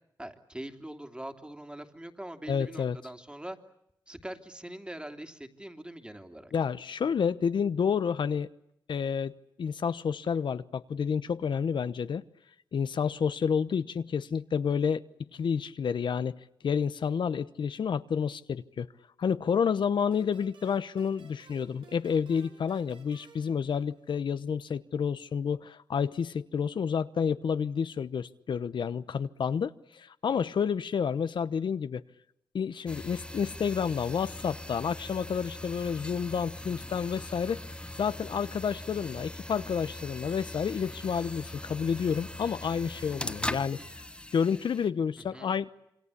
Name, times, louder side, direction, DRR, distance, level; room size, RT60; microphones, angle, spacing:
voice 1, 0.2-3.6 4.1-6.5 45.3-45.5, right 1 dB, 10° right, 6 dB, 3.0 m, -42 dB
voice 2, 2.5-3.0 6.5-8.5 8.9-9.3 9.6-12.2 12.7-15.0 15.3-18.9 19.2-32.0 32.5-37.6 38.0-43.8 44.3-45.7, left 6 dB, 70° left, 13 dB, 1.0 m, -30 dB
sound 1, 20.1-24.5, right 4 dB, 85° right, 6.1 m, -57 dB
sound 2, 32.9-44.9, left 1 dB, 10° left, 1.4 m, -41 dB
27.5 x 24.5 x 8.5 m, 0.78 s
cardioid pair, 65°, 8 cm